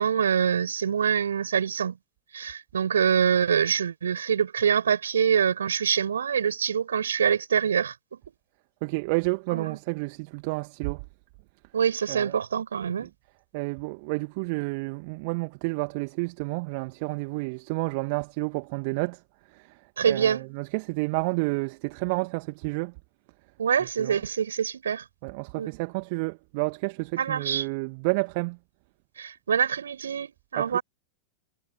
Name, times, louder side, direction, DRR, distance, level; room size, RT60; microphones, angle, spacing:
voice 1, 0.0-2.0 2.3-8.2 9.5-9.7 11.7-13.1 20.0-20.4 23.6-25.0 25.6-25.7 27.2-27.7 29.2-30.8, right 7 dB, 70° right, 7.3 m, -25 dB
voice 2, 8.8-11.0 12.1-12.3 13.0-13.1 13.5-19.2 19.5-22.9 24.0-24.2 25.2-28.6 30.6-30.8, right 29 dB, 45° right, 2.0 m, -30 dB
figure-of-eight pair, 90°, 0 cm